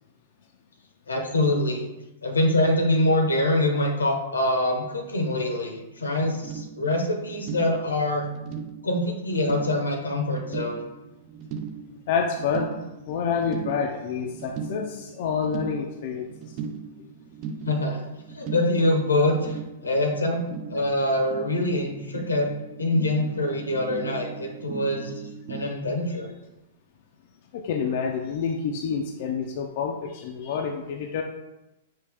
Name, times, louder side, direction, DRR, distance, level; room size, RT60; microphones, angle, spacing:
voice 1, 1.1-1.8 2.2-8.2 8.8-10.8 17.6-18.0 18.3-22.5 22.8-25.1 25.5-26.3, left 1 dB, 85° left, 3 dB, 0.9 m, -24 dB
sound 1, 6.2-25.7, right 6 dB, 40° right, 0.5 m, -38 dB
voice 2, 12.1-12.7 13.1-16.6 27.5-31.2, left 6 dB, 55° left, 2 dB, 0.5 m, -28 dB
5.4 x 2.8 x 3.4 m, 0.97 s
hypercardioid pair, 110°, 0 cm